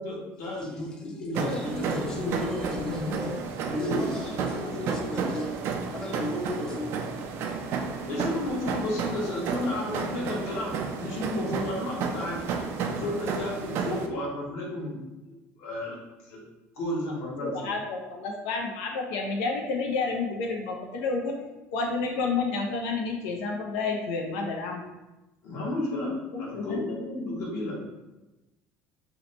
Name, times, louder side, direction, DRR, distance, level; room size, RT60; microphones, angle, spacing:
voice 1, 0.0-2.5 2.8-3.3 3.7-4.1 8.1-12.5 12.8-15.0 15.2-16.0 16.2-16.4 16.7-17.7 25.4-27.8, left 1 dB, 60° left, -3 dB, 1.0 m, -32 dB
voice 2, 1.3-7.4, left 1 dB, 15° left, 0 dB, 0.4 m, -36 dB
sound 1, 1.3-14.1, right 5 dB, 55° right, 0.4 m, -32 dB
voice 3, 17.4-21.4 21.7-24.8 26.3-26.8, left 4 dB, 90° left, 1 dB, 0.5 m, -30 dB
2.8 x 2.1 x 3.9 m, 1.0 s
cardioid pair, 140°, 5 cm